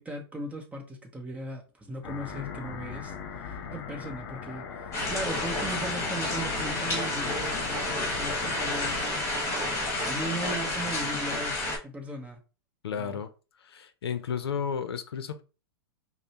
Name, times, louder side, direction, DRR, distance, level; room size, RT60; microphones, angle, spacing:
voice 1, 0.0-3.1 3.4-4.6 5.1-9.0 9.3-9.5 10.1-11.6 11.8-12.4 13.0-13.2, right 1 dB, 10° right, 0.9 m, -37 dB
sound 1, 2.0-9.0, left 6 dB, 50° left, 0.9 m, -39 dB
sound 2, 4.9-11.8, left 2 dB, 20° left, 1.6 m, -30 dB
voice 2, 12.8-13.3 13.6-15.4, left 7 dB, 85° left, 0.6 m, -33 dB
5.2 x 2.1 x 2.8 m
hypercardioid pair, 125°, 13 cm